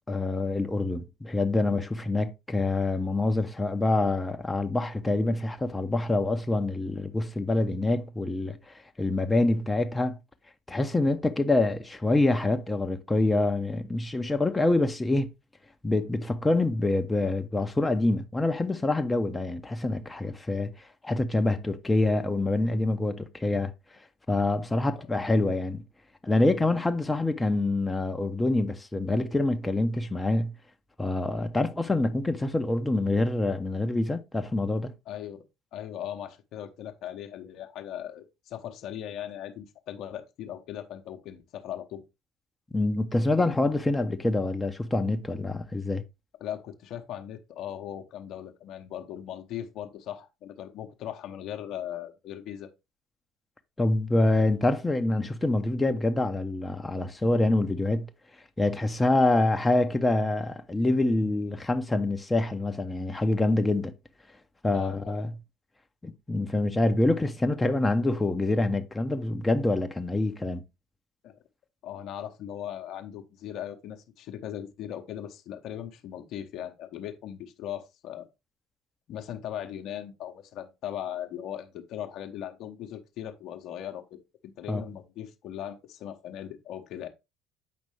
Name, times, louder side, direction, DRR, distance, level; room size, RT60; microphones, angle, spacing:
voice 1, 0.1-10.2 10.7-15.3 15.8-23.7 24.3-25.8 26.2-30.5 31.0-34.9 42.7-46.0 53.8-58.1 58.6-63.9 64.6-65.3 66.0-70.6 84.7-84.8, left 2 dB, 15° left, 0.8 m, -26 dB
voice 2, 35.1-35.4 35.7-42.0 46.4-52.7 64.7-65.3 71.2-71.4 71.8-78.3 79.1-87.1, left 10 dB, 60° left, 1.0 m, -39 dB
7.6 x 5.2 x 3.2 m
hypercardioid pair, 60°, 0 cm